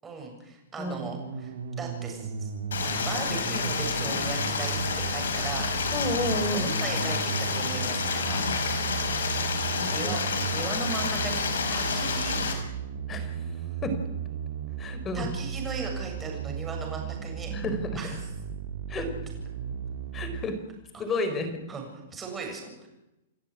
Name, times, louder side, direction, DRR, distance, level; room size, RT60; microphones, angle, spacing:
voice 1, 0.0-2.5 2.8-4.8 5.1-5.7 6.5-8.4 9.6-12.4 15.1-17.6 17.9-18.3 20.9-21.2 21.7-22.9, right 4 dB, 15° right, 2 dB, 7.5 m, -37 dB
voice 2, 0.8-1.1 5.9-6.7 9.7-10.1 13.1-13.3 13.8-14.0 14.8-15.3 17.5-17.8 18.9-19.0 20.1-20.6 21.0-21.5, left 2 dB, 20° left, 8 dB, 4.6 m, -31 dB
sound 1, 1.0-20.5, right 7 dB, 70° right, 2.6 m, -35 dB
Stream, 2.7-12.5, left 5 dB, 85° left, 5.6 m, -29 dB
29.0 x 11.5 x 9.9 m, 0.94 s
hypercardioid pair, 140°, 0 cm